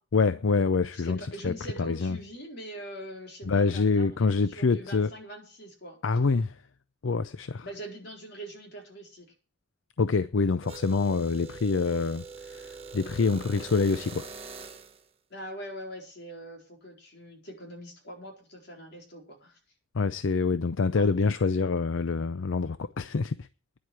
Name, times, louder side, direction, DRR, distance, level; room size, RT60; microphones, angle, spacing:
voice 1, 0.1-1.2 1.4-1.5 1.8-2.2 3.5-5.1 6.0-6.6 7.0-7.6 10.0-14.3 19.9-23.5, left 4 dB, 80° left, 0.5 m, -26 dB
voice 2, 0.9-6.0 7.6-9.3 15.3-19.6 20.9-21.1, equal, 60° left, 4.5 m, -43 dB
sound 1, 10.6-15.0, right 4 dB, 30° right, 1.4 m, -43 dB
10.5 x 7.6 x 8.1 m
head